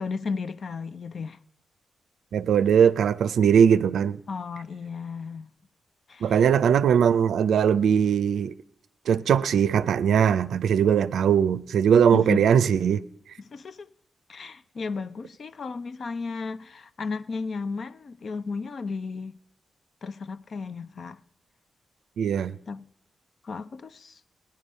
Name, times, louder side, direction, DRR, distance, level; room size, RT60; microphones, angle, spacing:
voice 1, 0.0-1.4 4.3-5.5 6.1-6.5 12.1-12.5 13.4-13.9 14.3-19.3 20.0-21.2 22.7-22.9 23.4-24.2, left 4 dB, 60° left, 0.5 m, -34 dB
voice 2, 2.3-4.2 6.2-8.5 9.1-13.0 22.2-22.5, right 8 dB, 85° right, 0.4 m, -20 dB
18.0 x 10.5 x 5.4 m
cardioid pair, 80°, 0 cm